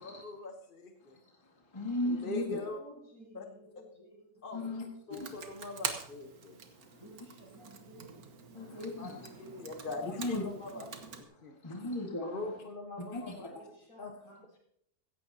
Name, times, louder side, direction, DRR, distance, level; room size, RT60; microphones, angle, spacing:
voice 1, 0.0-1.2 2.1-2.8 3.3-3.4 4.4-4.7 5.1-6.6 9.0-10.2 10.6-10.8 11.4-11.6 12.2-13.5 14.0-14.1, left 2 dB, 35° left, 3 dB, 1.2 m, -42 dB
voice 2, 1.0-2.6 4.5-5.4 6.6-7.0 8.5-9.3 10.0-10.5 11.3-12.6 13.0-13.6, left 2 dB, 20° left, 1 dB, 1.7 m, -38 dB
voice 3, 2.5-4.8 6.9-8.8 10.3-10.8 13.4-14.6, right 1 dB, 65° left, -4 dB, 7.6 m, -56 dB
Computer keyboard, 5.1-11.2, right 6 dB, 70° right, 1.8 m, -44 dB
16.5 x 14.5 x 2.8 m, 0.74 s
omnidirectional pair, 1.6 m